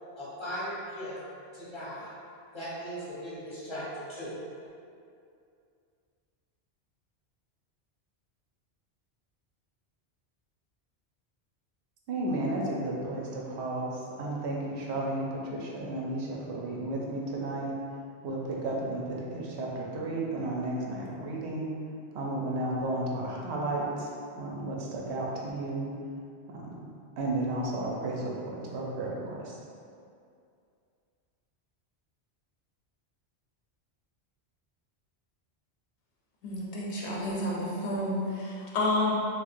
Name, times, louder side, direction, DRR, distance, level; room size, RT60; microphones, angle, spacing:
voice 1, 0.2-1.2 1.5-2.1 2.5-4.4, equal, 30° left, -9 dB, 0.8 m, -38 dB
voice 2, 12.1-17.7 18.2-21.7 22.1-24.1 24.4-25.9 26.5-26.7 27.2-29.5, right 2 dB, 80° right, -3 dB, 0.9 m, -33 dB
voice 3, 36.4-39.1, left 1 dB, 90° left, -4 dB, 0.9 m, -30 dB
4.3 x 2.1 x 2.5 m, 2.4 s
omnidirectional pair, 1.1 m